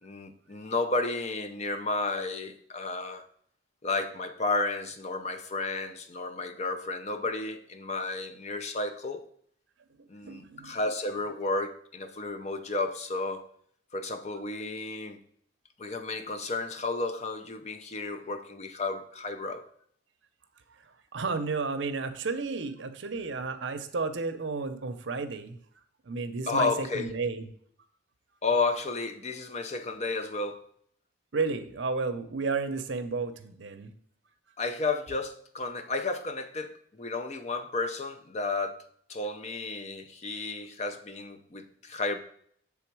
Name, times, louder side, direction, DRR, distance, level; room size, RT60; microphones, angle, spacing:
voice 1, 0.0-3.2 3.8-9.2 10.1-13.4 13.9-15.2 15.8-19.6 26.5-27.1 28.4-30.7 34.6-38.8 39.1-42.2, left 3 dB, 35° left, 0.5 m, -32 dB
voice 2, 10.2-10.8 21.1-25.6 26.1-27.4 31.3-33.9, right 4 dB, 70° right, 0.6 m, -32 dB
7.1 x 3.6 x 4.5 m
head